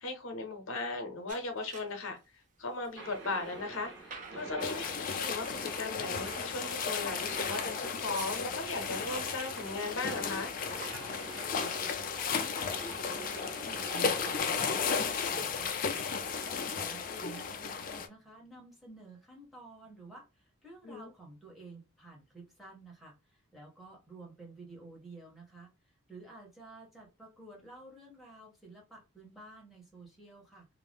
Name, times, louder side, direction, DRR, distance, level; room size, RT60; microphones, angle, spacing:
voice 1, 0.0-2.2 2.6-10.5 20.8-21.1, left 3 dB, 75° left, 0.7 m, -37 dB
sound 1, 1.3-2.2 2.7-4.8 5.9-11.8, right 5 dB, 35° right, 0.5 m, -52 dB
sound 2, 3.0-14.4, right 3 dB, 55° right, 1.3 m, -48 dB
sound 3, 4.6-18.1, left 5 dB, 40° left, 0.3 m, -34 dB
voice 2, 11.6-16.1 16.4-30.7, right 2 dB, ahead, 0.8 m, -51 dB
2.5 x 2.1 x 3.4 m
head